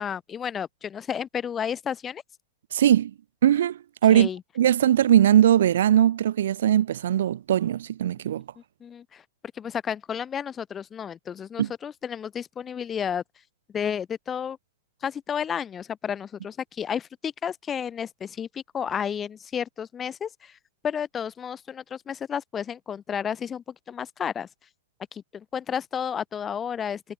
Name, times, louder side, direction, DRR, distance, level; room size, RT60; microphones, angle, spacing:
voice 1, 0.0-2.2 4.1-4.4 8.8-9.2 9.5-13.2 13.7-14.6 15.0-20.6 20.8-24.5 25.1-27.0, left 8 dB, 20° left, 2.8 m, -32 dB
voice 2, 2.7-3.1 3.4-4.3 4.6-8.4 11.6-11.7, right 11 dB, 75° right, 0.6 m, -20 dB
hypercardioid pair, 130°, 0 cm